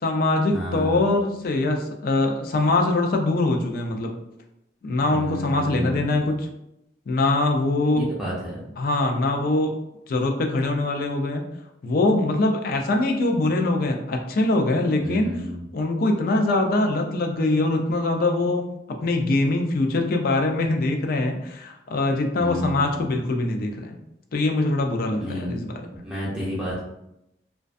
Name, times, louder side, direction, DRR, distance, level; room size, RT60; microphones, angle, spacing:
voice 1, 0.0-4.2 4.8-6.5 7.1-8.1 8.8-9.7 10.1-11.5 11.8-15.4 15.7-18.6 19.0-24.0 24.3-25.8, left 2 dB, 55° left, 3 dB, 0.4 m, -23 dB
voice 2, 0.5-1.0 5.1-6.3 7.9-8.6 15.0-15.6 22.4-23.1 25.2-25.7 26.0-26.8, equal, 5° right, -7 dB, 0.5 m, -31 dB
2.3 x 2.2 x 2.4 m, 0.84 s
head